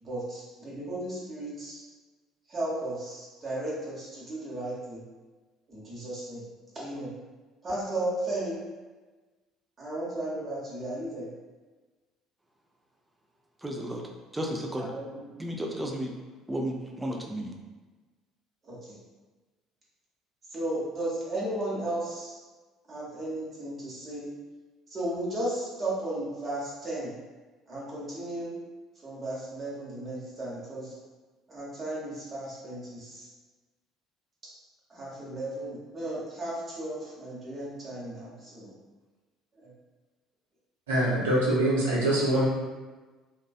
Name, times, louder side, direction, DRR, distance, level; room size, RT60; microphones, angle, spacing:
voice 1, 0.0-1.8 2.5-5.0 5.7-6.4 6.7-7.1 7.6-8.6 9.8-11.3 14.9-15.3 18.6-19.0 20.5-22.4 22.9-24.3 24.9-27.1 27.7-28.5 29.0-30.9 31.5-33.3 34.4-34.5 34.9-38.7 39.6-39.7, right 1 dB, 30° right, -7 dB, 0.9 m, -35 dB
voice 2, 13.6-14.1 14.3-14.9 15.4-16.1 16.5-17.5, right 1 dB, 10° right, 1 dB, 0.4 m, -33 dB
voice 3, 40.9-42.5, right 1 dB, 70° right, -6 dB, 0.7 m, -24 dB
2.4 x 2.2 x 2.4 m, 1.3 s
figure-of-eight pair, 55°, 0 cm